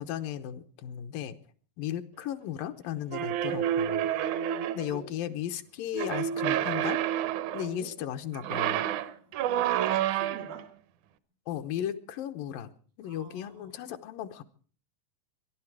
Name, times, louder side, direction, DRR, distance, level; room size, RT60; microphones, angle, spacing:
voice 1, 0.0-1.4 1.8-4.1 4.7-7.0 7.5-8.9 11.5-12.7 13.0-14.4, left 11 dB, 80° left, 8 dB, 2.6 m, -35 dB
sound 1, 3.1-5.0 5.9-7.7 8.3-10.6, right 11 dB, 70° right, 1.9 m, -29 dB
voice 2, 8.7-9.3 9.8-10.7 13.0-13.7, right 2 dB, 90° right, 6 dB, 5.4 m, -46 dB
24.0 x 11.5 x 4.8 m, 0.43 s
omnidirectional pair, 4.1 m